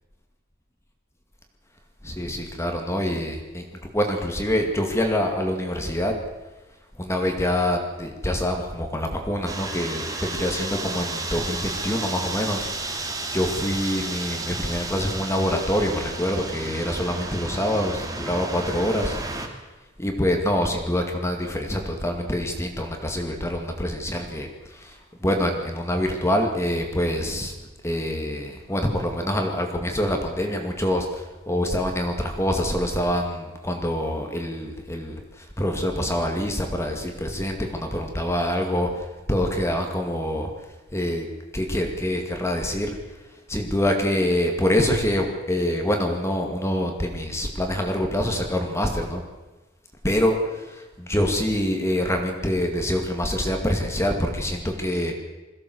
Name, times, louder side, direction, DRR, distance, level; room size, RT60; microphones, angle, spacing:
voice 1, 2.0-3.6 3.9-6.1 7.0-19.2 20.0-27.6 27.8-40.7 40.9-41.3 41.5-49.2 50.0-55.1, left 1 dB, 15° left, 3 dB, 2.2 m, -25 dB
sound 1, 9.5-19.5, right 2 dB, 20° right, 2.4 m, -32 dB
22.0 x 15.5 x 7.9 m, 1.2 s
head